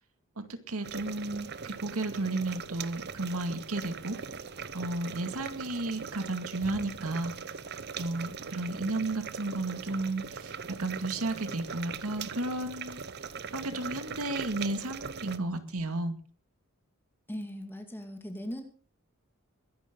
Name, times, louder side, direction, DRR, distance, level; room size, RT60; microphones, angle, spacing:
voice 1, 0.4-4.2 4.7-7.3 7.9-13.0 13.5-16.1, right 2 dB, 85° right, 8 dB, 2.2 m, -33 dB
sound 1, 0.8-15.4, right 6 dB, 50° right, 0.8 m, -41 dB
voice 2, 17.3-18.6, equal, 10° left, 4 dB, 2.4 m, -39 dB
22.0 x 11.0 x 3.9 m, 0.39 s
head